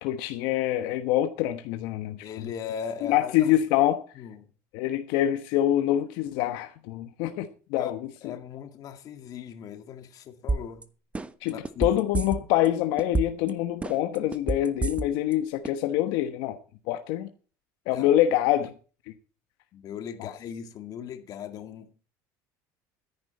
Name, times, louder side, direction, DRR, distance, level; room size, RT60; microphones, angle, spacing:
voice 1, 0.0-2.2 3.1-4.0 4.7-8.0 11.4-11.5 11.8-16.6 16.9-17.3 17.9-18.7, left 12 dB, 75° left, 1.2 m, -25 dB
voice 2, 2.2-3.5 4.2-4.5 7.8-7.9 8.2-10.9 11.5-12.0 17.9-18.1 19.7-21.9, left 8 dB, 50° left, 2.1 m, -38 dB
sound 1, 10.5-10.8 11.1-12.7 13.0-13.5 13.8-15.3 15.6-15.7, right 3 dB, 15° right, 1.1 m, -28 dB
14.0 x 10.5 x 4.2 m
supercardioid pair, 115°, 8 cm